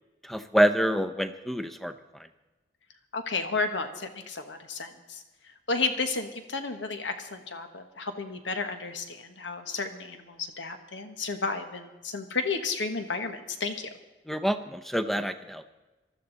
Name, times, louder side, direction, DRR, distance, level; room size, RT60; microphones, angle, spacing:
voice 1, 0.2-2.3 14.3-15.6, equal, ahead, 10 dB, 0.6 m, -27 dB
voice 2, 3.1-5.2 5.7-13.9, left 4 dB, 80° left, 7 dB, 1.4 m, -32 dB
19.5 x 13.0 x 4.0 m, 1.1 s
head